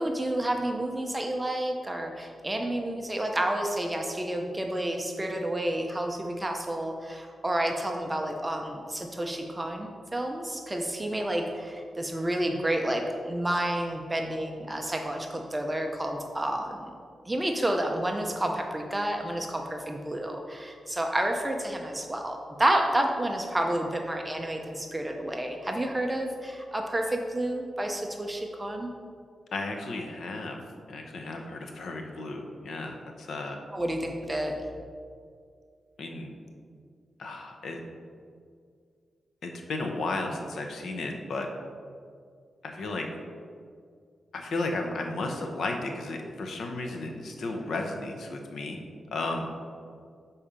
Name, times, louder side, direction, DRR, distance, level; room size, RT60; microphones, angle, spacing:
voice 1, 0.0-16.9 17.3-28.9 33.7-34.5, right 1 dB, 15° right, 2 dB, 0.6 m, -30 dB
voice 2, 29.5-30.6 30.9-33.6 36.0-36.3 37.2-37.8 39.4-41.5 42.6-43.1 44.3-48.8 49.1-49.5, left 2 dB, 80° left, 3 dB, 0.8 m, -34 dB
6.9 x 4.3 x 5.0 m, 2.2 s
wide cardioid pair, 115°, 0 cm